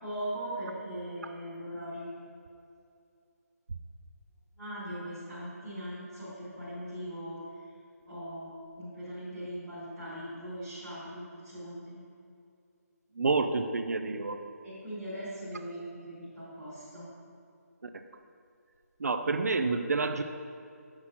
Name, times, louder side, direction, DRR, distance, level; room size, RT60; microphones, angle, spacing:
voice 1, 0.0-2.1 4.6-7.4 8.1-12.0 14.6-17.1, equal, 5° left, -16 dB, 1.6 m, -40 dB
voice 2, 13.1-14.4 17.8-18.0 19.0-20.2, right 3 dB, 70° right, 8 dB, 0.4 m, -29 dB
7.4 x 5.8 x 3.0 m, 2.5 s
hypercardioid pair, 180°, 9 cm